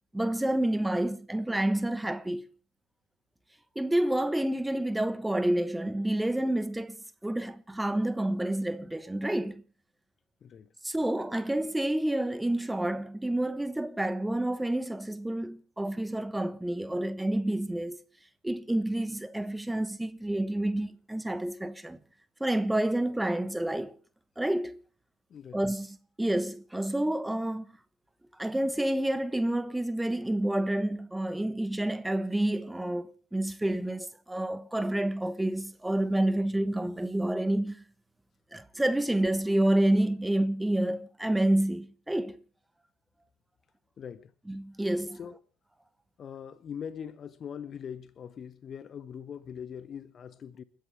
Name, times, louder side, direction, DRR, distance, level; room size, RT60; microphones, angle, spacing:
voice 1, 0.1-2.5 3.7-7.0 7.2-9.6 10.8-18.0 18.4-22.0 22.4-24.0 24.4-24.8 25.5-27.7 28.4-37.8 38.5-42.4 44.5-45.2, right 1 dB, 5° right, 1.1 m, -29 dB
voice 2, 10.4-10.7 25.3-25.6 44.0-44.3 45.1-45.4 46.2-50.6, left 8 dB, 40° left, 0.9 m, -42 dB
29.5 x 10.5 x 3.4 m
figure-of-eight pair, 60°, 0 cm